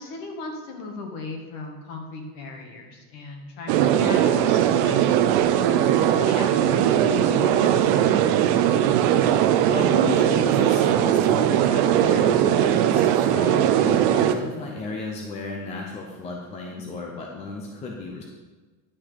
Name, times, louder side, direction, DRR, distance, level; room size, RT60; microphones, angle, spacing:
voice 1, 0.0-5.2 5.8-8.3, left 3 dB, 45° left, 2 dB, 1.8 m, -37 dB
sound 1, 3.7-14.3, right 10 dB, 40° right, 0.4 m, -20 dB
voice 2, 9.7-18.2, left 3 dB, 15° left, 0 dB, 0.5 m, -34 dB
11.0 x 6.1 x 5.0 m, 1.3 s
supercardioid pair, 170°, 46 cm